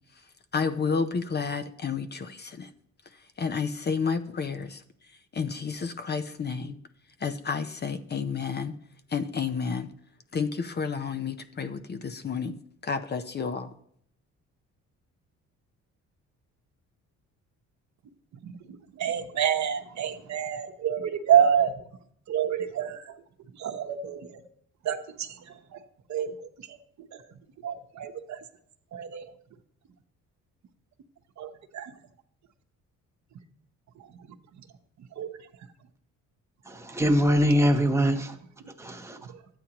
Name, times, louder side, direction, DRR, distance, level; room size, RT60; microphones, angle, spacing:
voice 1, 0.5-2.7 3.4-4.8 5.3-6.8 7.2-8.7 9.1-9.9 10.3-12.5 12.8-13.7, left 5 dB, 35° left, 10 dB, 0.6 m, -30 dB
voice 2, 19.0-21.8 22.3-23.1 23.6-24.4 24.8-25.8 26.1-26.8 27.6-28.4 28.9-29.3 31.4-31.9 35.2-35.3 39.3-39.4, right 9 dB, 65° right, 6 dB, 1.0 m, -28 dB
voice 3, 36.7-38.3 38.8-39.2, equal, 10° right, 4 dB, 1.1 m, -23 dB
12.5 x 8.8 x 2.9 m, 0.66 s
cardioid pair, 90°, 30 cm